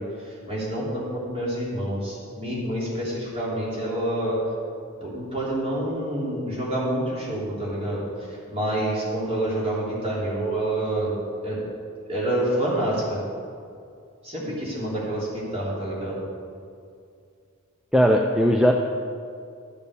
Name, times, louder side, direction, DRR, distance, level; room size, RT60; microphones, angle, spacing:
voice 1, 0.0-4.4 5.0-11.6 12.1-13.2 14.2-16.2, right 1 dB, 30° right, -6 dB, 3.4 m, -28 dB
voice 2, 17.9-18.7, equal, 5° right, 1 dB, 0.5 m, -18 dB
12.5 x 6.9 x 6.8 m, 2.4 s
head